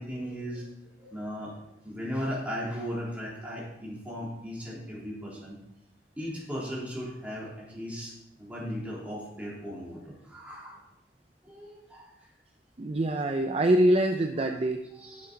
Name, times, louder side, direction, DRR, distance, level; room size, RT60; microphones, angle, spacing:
voice 1, 0.0-1.6 1.8-5.6 6.2-10.8 11.4-12.1 14.4-14.6 15.0-15.3, equal, 10° right, -6 dB, 3.4 m, -37 dB
voice 2, 12.8-14.8, right 1 dB, 35° right, 5 dB, 0.5 m, -24 dB
9.6 x 7.1 x 5.1 m, 0.84 s
head